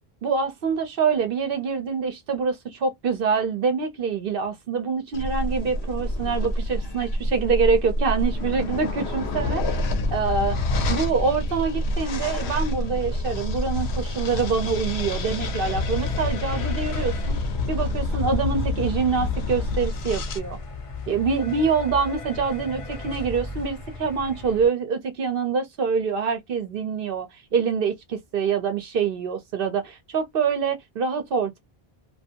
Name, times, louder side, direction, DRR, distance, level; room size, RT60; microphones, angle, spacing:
voice 1, 0.2-9.8 10.1-10.5 10.9-17.4 17.7-20.6 21.1-31.6, right 5 dB, 65° right, 0.8 m, -25 dB
sound 1, 5.1-20.4, left 2 dB, 85° left, 0.9 m, -27 dB
sound 2, 13.9-24.7, left 2 dB, 40° left, 0.5 m, -38 dB
2.5 x 2.3 x 2.6 m
omnidirectional pair, 1.0 m